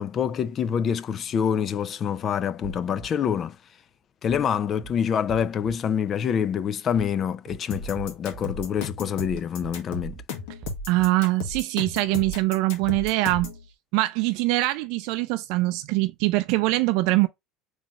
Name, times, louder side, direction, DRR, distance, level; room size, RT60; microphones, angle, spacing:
voice 1, 0.0-3.6 4.2-10.2, left 8 dB, 35° left, 0.4 m, -26 dB
sound 1, 2.6-3.1 4.3-4.5 4.8-4.9 5.3-5.7 7.0-7.2 7.5-7.6 7.9-8.4 9.6-9.8 10.1-10.2 10.6-11.1 12.3-12.5 12.8-12.9, right 4 dB, 50° right, 0.9 m, -41 dB
sound 2, 7.7-13.6, left 4 dB, 75° left, 1.3 m, -34 dB
voice 2, 10.9-13.5 13.9-17.3, right 19 dB, 70° right, 0.3 m, -23 dB
3.7 x 3.1 x 2.9 m
supercardioid pair, 130°, 0 cm